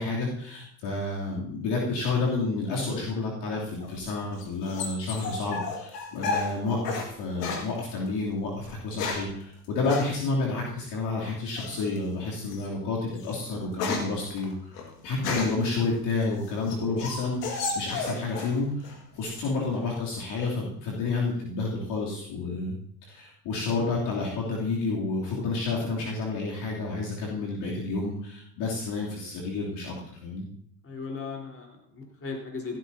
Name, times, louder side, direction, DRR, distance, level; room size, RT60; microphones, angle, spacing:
voice 1, 0.0-14.7 15.0-29.9 30.2-30.5, left 3 dB, 60° left, -4 dB, 3.1 m, -30 dB
sound 1, 3.8-7.1 7.4-7.7 8.6-9.4 9.9-10.1 11.6-12.0 12.5-12.7 13.1-15.7 16.2-18.6 18.8-19.5, left 4 dB, 85° left, 2.0 m, -33 dB
voice 2, 30.8-32.8, left 4 dB, 30° left, 0 dB, 4.1 m, -37 dB
15.5 x 12.0 x 2.8 m, 0.66 s
hypercardioid pair, 65°, 47 cm